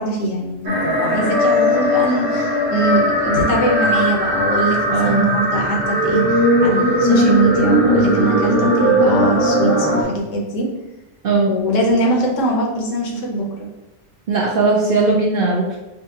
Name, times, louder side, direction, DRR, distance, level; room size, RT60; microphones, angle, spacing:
voice 1, 0.0-10.7 11.5-13.7, right 2 dB, 70° left, -1 dB, 1.1 m, -22 dB
sound 1, 0.7-10.0, equal, 75° right, 1.3 m, -18 dB
voice 2, 4.9-5.3 11.2-11.5 14.3-15.8, right 3 dB, 60° right, -3 dB, 0.6 m, -18 dB
4.9 x 2.3 x 2.8 m, 1.0 s
omnidirectional pair, 1.4 m